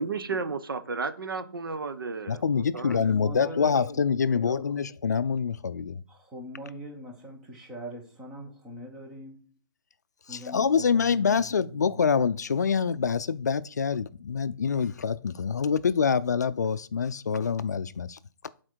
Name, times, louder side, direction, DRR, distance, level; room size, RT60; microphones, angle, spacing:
voice 1, 0.0-3.1, right 4 dB, 70° right, 0.9 m, -33 dB
voice 2, 2.3-6.0 10.3-18.2, left 6 dB, 50° left, 0.4 m, -26 dB
voice 3, 3.1-4.8 6.1-9.4 10.3-12.0, equal, 5° right, 0.5 m, -42 dB
8.7 x 4.4 x 4.5 m
hypercardioid pair, 180°, 12 cm